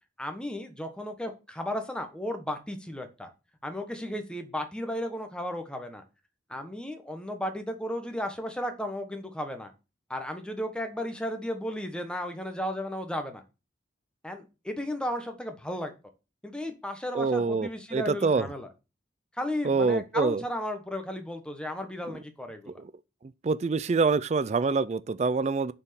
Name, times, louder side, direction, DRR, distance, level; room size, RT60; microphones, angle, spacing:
voice 1, 0.2-3.3 3.6-6.0 6.5-9.7 10.1-13.4 14.2-15.9 16.4-18.7 19.4-22.8, left 1 dB, 5° left, 1.2 m, -34 dB
voice 2, 17.1-18.5 19.6-20.4 23.4-25.7, right 4 dB, 35° right, 0.3 m, -25 dB
7.0 x 4.6 x 6.9 m
head